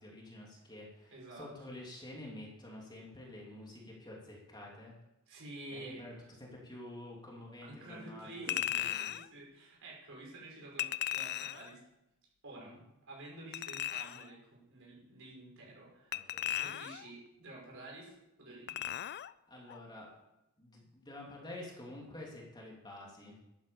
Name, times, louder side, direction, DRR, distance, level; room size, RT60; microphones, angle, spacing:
voice 1, 0.0-4.9 5.7-6.1 6.4-9.0 12.5-12.8 16.1-16.6 19.5-20.1 20.6-23.4, left 1 dB, 20° left, -2 dB, 3.0 m, -49 dB
voice 2, 1.1-1.5 5.3-6.0 7.6-11.8 12.4-12.7 13.1-16.2 16.6-18.1 18.4-18.9, right 2 dB, 65° right, -2 dB, 5.6 m, -50 dB
Chink clink, 8.5-9.3 10.8-11.7 13.5-14.3 16.1-17.1 18.7-19.3 19.7-19.8, left 11 dB, 50° left, 0.4 m, -37 dB
11.5 x 9.0 x 7.0 m, 0.91 s
head